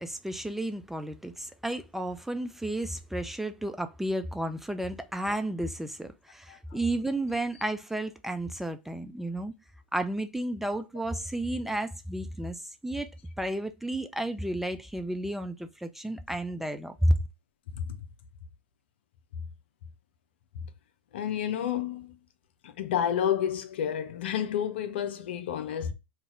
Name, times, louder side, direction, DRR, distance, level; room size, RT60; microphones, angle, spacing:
voice 1, 0.0-9.5 9.9-13.1 13.4-17.2, right 1 dB, 5° right, 0.3 m, -32 dB
voice 2, 6.5-6.8 17.7-18.0 21.1-22.1 22.6-25.9, left 9 dB, 70° left, 0.6 m, -30 dB
2.6 x 2.4 x 3.0 m
hypercardioid pair, 100°, 6 cm